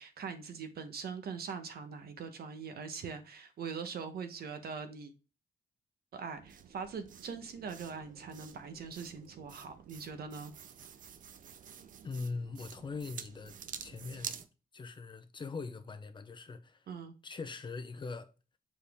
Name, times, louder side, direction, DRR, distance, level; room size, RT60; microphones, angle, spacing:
voice 1, 0.0-5.1 6.1-10.5 16.9-17.1, right 5 dB, 70° right, 1.1 m, -42 dB
sound 1, 6.4-14.5, right 8 dB, 55° right, 0.6 m, -49 dB
voice 2, 12.0-13.6 13.8-14.4 14.7-16.9 17.2-18.3, left 4 dB, 30° left, 0.7 m, -41 dB
6.9 x 4.2 x 3.5 m
wide cardioid pair, 175°, 17 cm